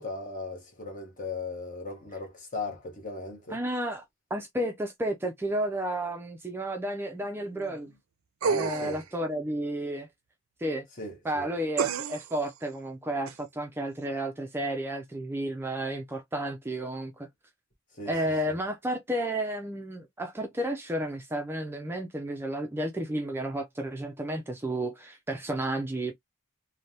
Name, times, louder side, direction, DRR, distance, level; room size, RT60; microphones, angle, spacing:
voice 1, 0.0-3.6 7.4-7.9 8.4-9.0 11.0-11.5 18.0-18.2 18.5-18.6, left 3 dB, 40° left, 1.0 m, -38 dB
voice 2, 3.5-4.0 4.3-7.9 8.5-10.1 10.6-10.9 11.2-17.3 18.1-26.1, right 1 dB, 10° right, 0.3 m, -32 dB
sound 1, 8.4-9.1 11.8-12.4 13.3-13.4, right 6 dB, 85° right, 0.5 m, -29 dB
3.2 x 2.1 x 2.7 m
head